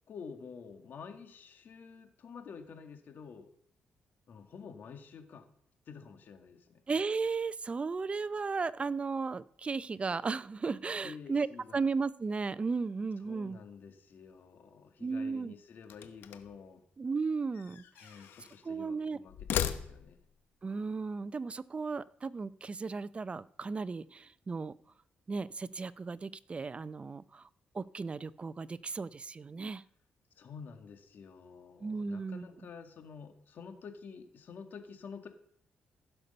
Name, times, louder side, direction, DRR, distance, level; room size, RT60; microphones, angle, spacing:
voice 1, 0.1-3.5 4.3-5.5 5.9-6.8 11.0-11.8 13.2-16.8 18.0-20.2 30.4-35.3, left 6 dB, 65° left, 6 dB, 1.9 m, -49 dB
voice 2, 6.9-11.5 11.7-13.6 15.0-15.5 17.0-18.1 18.6-19.2 20.6-24.7 25.3-27.5 27.7-29.8 31.8-32.5, right 4 dB, 35° right, 18 dB, 0.5 m, -35 dB
sound 1, 15.9-16.6 17.5-18.6 19.3-20.3, left 10 dB, 80° left, 1.0 m, -37 dB
15.5 x 6.7 x 5.5 m, 0.68 s
cardioid pair, 70°, 4 cm